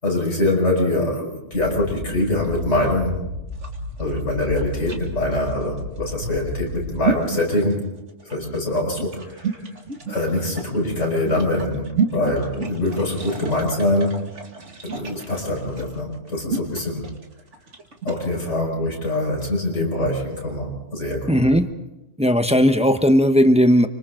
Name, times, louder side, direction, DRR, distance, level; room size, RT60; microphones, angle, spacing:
voice 1, 0.0-3.2 4.0-7.9 8.2-9.6 10.1-14.3 14.8-17.1 18.0-21.5, left 1 dB, 90° left, -1 dB, 6.1 m, -24 dB
sound 1, 1.5-7.0, left 2 dB, 65° left, 4.5 m, -33 dB
sound 2, 3.5-18.2, right 4 dB, 85° right, 2.5 m, -31 dB
voice 2, 21.3-21.7 22.2-23.9, equal, 5° right, 7 dB, 0.9 m, -16 dB
29.5 x 26.0 x 3.9 m, 0.95 s
omnidirectional pair, 1.2 m